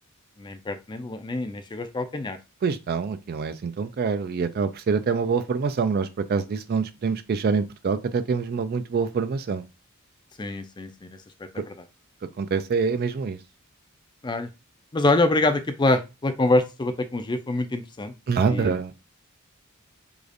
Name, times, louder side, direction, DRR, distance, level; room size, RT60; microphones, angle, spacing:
voice 1, 0.4-2.4 10.4-11.2 11.5-11.7 14.2-14.5 14.9-18.1 18.5-18.7, left 2 dB, 20° left, 0.4 m, -25 dB
voice 2, 2.6-9.7 11.6-11.7 12.4-13.4 18.3-18.9, right 5 dB, 45° right, 0.3 m, -25 dB
4.8 x 2.4 x 2.6 m
head